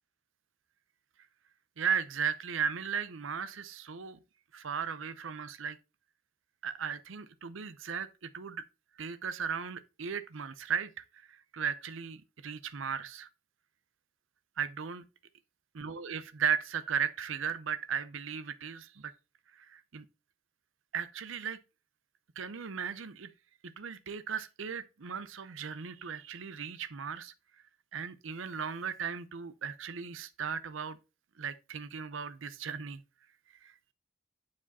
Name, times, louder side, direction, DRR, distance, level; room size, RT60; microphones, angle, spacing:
voice 1, 1.8-4.2 4.5-5.8 6.6-8.6 9.0-13.3 14.6-15.0 15.8-19.1 19.5-20.0 20.9-21.6 22.4-23.3 23.6-27.3 27.9-31.0 31.4-33.0 33.6-33.9, right 7 dB, 70° right, 0.6 m, -36 dB
9.4 x 4.9 x 4.1 m
head